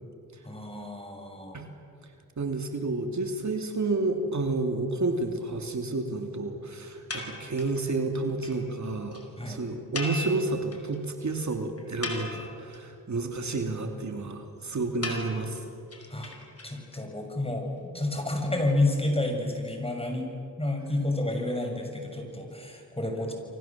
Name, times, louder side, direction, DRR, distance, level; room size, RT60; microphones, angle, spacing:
voice 1, 0.4-1.6 9.4-9.6 16.1-16.3 16.6-20.3 20.6-23.3, left 2 dB, 15° left, 3 dB, 6.9 m, -30 dB
voice 2, 2.4-15.6, right 3 dB, 50° right, 4 dB, 2.9 m, -30 dB
sound 1, 7.1-7.8 8.1-8.2 8.4-8.6 8.8-8.9 9.1-9.2 9.9-11.0 11.3-11.4 11.8-12.8 15.0-17.0, left 2 dB, 40° left, 5.1 m, -37 dB
30.0 x 24.5 x 7.5 m, 2.5 s
cardioid pair, 65°, 36 cm